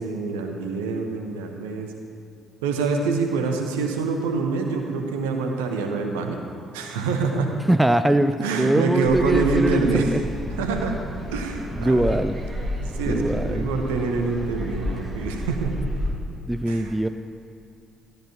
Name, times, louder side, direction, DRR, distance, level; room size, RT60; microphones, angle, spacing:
voice 1, 0.0-1.9 2.6-6.4 6.7-7.6 8.4-10.1 10.6-11.0 11.3-12.1 12.8-15.7 16.7-16.9, right 4 dB, 70° right, 4 dB, 0.9 m, -26 dB
voice 2, 7.7-10.2 11.7-12.4 13.1-13.8 16.5-17.1, right 1 dB, 10° right, 11 dB, 0.4 m, -22 dB
sound 1, 9.0-16.1, left 1 dB, 30° right, 2.6 m, -31 dB
13.5 x 13.0 x 2.9 m, 2.5 s
figure-of-eight pair, 45°, 0 cm